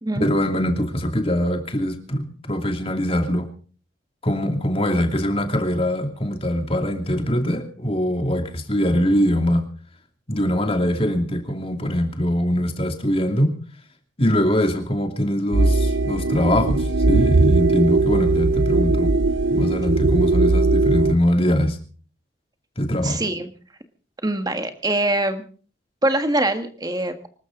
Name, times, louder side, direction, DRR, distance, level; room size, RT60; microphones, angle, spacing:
voice 1, 0.2-3.5 4.2-9.7 10.3-13.6 14.2-19.1 19.5-21.8 22.8-23.2, equal, 30° left, 5 dB, 2.7 m, -22 dB
sound 1, 15.5-21.1, right 3 dB, 80° right, 0.8 m, -19 dB
voice 2, 23.0-23.5 24.2-25.4 26.0-27.3, right 1 dB, 20° right, 7 dB, 1.7 m, -23 dB
25.0 x 13.5 x 3.9 m, 0.40 s
head